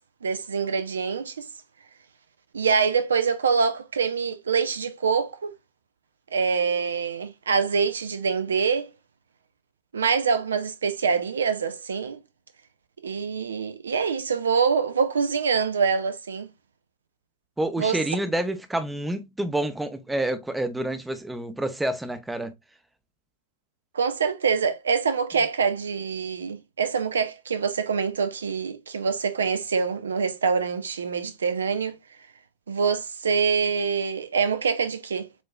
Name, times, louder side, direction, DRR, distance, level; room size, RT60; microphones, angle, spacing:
voice 1, 0.2-1.5 2.5-5.5 6.3-8.9 9.9-12.2 13.0-16.5 17.8-18.0 23.9-32.0 32.7-35.3, right 5 dB, 70° right, 0.7 m, -25 dB
voice 2, 17.6-22.5, right 1 dB, 5° right, 0.7 m, -28 dB
7.2 x 3.0 x 2.2 m
figure-of-eight pair, 90°, 0 cm